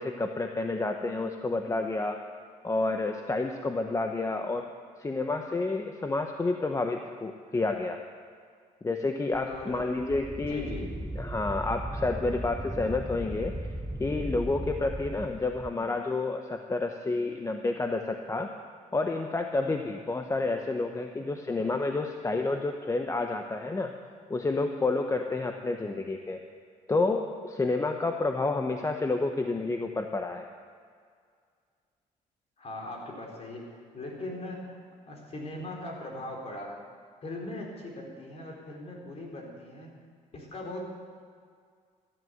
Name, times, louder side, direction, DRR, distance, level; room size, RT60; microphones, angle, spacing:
voice 1, 0.0-2.2 2.6-4.7 5.0-8.0 8.8-10.7 11.2-13.7 14.0-18.5 18.9-23.9 24.3-26.4 26.9-30.5, left 3 dB, 20° left, 5 dB, 1.0 m, -29 dB
Wind, 9.3-15.7, right 1 dB, 5° right, 0.6 m, -37 dB
voice 2, 9.5-9.9 10.3-10.9 32.6-34.8 35.1-36.7 37.2-39.9 40.3-40.8, left 2 dB, 40° left, 0 dB, 4.6 m, -39 dB
15.0 x 11.0 x 7.9 m, 2.1 s
cardioid pair, 95°, 15 cm